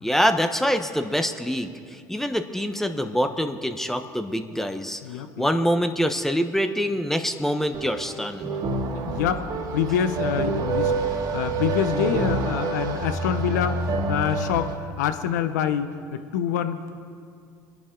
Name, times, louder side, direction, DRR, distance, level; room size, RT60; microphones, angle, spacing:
voice 1, 0.0-5.0 5.4-8.5, equal, 5° left, 7 dB, 1.0 m, -25 dB
voice 2, 5.0-5.5 8.9-13.8 14.1-17.0, left 8 dB, 90° left, 10 dB, 0.8 m, -26 dB
sound 1, 7.7-14.7, right 3 dB, 50° right, 2.1 m, -27 dB
24.0 x 10.5 x 3.8 m, 2.3 s
supercardioid pair, 85°, 9 cm